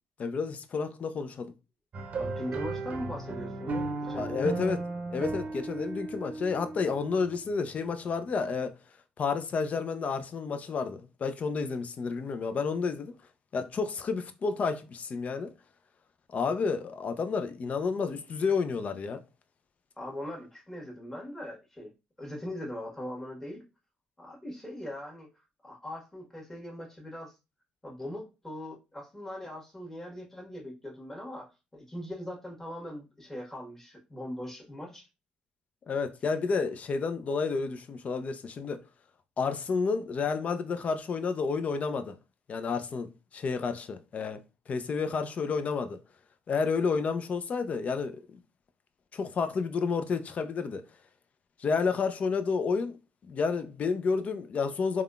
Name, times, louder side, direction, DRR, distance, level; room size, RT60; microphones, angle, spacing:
voice 1, 0.2-1.5 4.1-4.8 5.1-8.8 9.2-13.2 13.5-15.5 16.3-19.2 35.9-38.8 39.4-42.2 42.5-44.4 44.7-46.0 46.5-48.4 49.1-50.8 51.6-53.0 53.3-55.0, left 5 dB, 50° left, 0.5 m, -30 dB
sound 1, 1.9-7.5, right 3 dB, 50° right, 0.6 m, -35 dB
voice 2, 2.2-4.5 20.0-21.9 22.2-23.6 24.2-25.3 25.6-27.3 27.8-35.1, left 1 dB, 15° left, 1.4 m, -40 dB
3.5 x 2.2 x 2.4 m
supercardioid pair, 65°, 3 cm